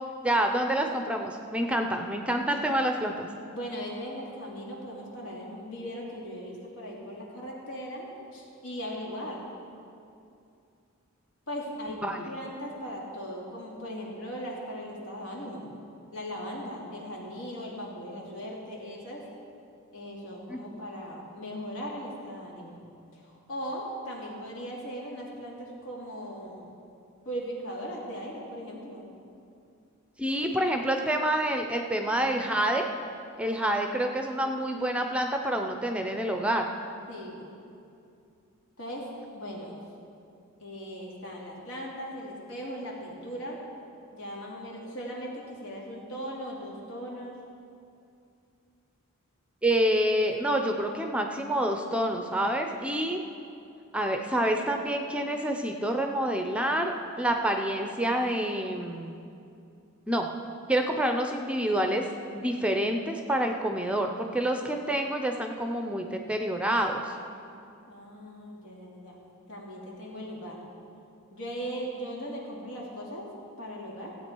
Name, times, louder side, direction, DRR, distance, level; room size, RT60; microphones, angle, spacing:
voice 1, 0.2-3.3 12.0-12.3 20.5-20.6 30.2-32.9 33.4-36.7 49.6-53.2 53.9-56.9 57.2-59.2 60.1-60.3 60.7-62.1 62.3-67.1, right 1 dB, 5° right, 4 dB, 0.5 m, -27 dB
voice 2, 3.4-9.4 11.5-15.7 16.1-19.3 19.9-22.8 23.2-26.7 27.2-29.1 30.4-30.7 37.1-37.5 38.8-39.8 40.6-43.6 44.1-47.4 67.9-69.2 69.5-70.6 71.3-74.2, equal, 85° left, -3 dB, 2.6 m, -38 dB
16.0 x 8.5 x 4.5 m, 2.6 s
head